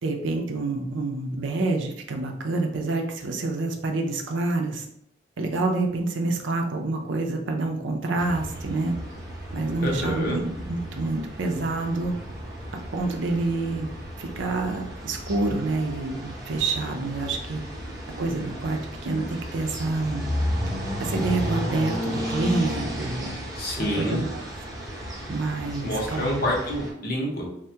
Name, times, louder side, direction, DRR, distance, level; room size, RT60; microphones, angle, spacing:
voice 1, 0.0-4.9 5.4-8.9 9.5-12.1 12.9-13.9 14.2-17.6 18.2-20.3 21.0-23.4 23.8-24.4 25.3-26.4, right 2 dB, 75° right, 3 dB, 0.5 m, -27 dB
sound 1, 8.2-26.9, equal, 20° right, 0.7 m, -34 dB
voice 2, 9.8-10.4 23.6-24.2 25.8-27.5, left 1 dB, 50° left, -2 dB, 0.7 m, -27 dB
3.3 x 2.1 x 2.7 m, 0.73 s
head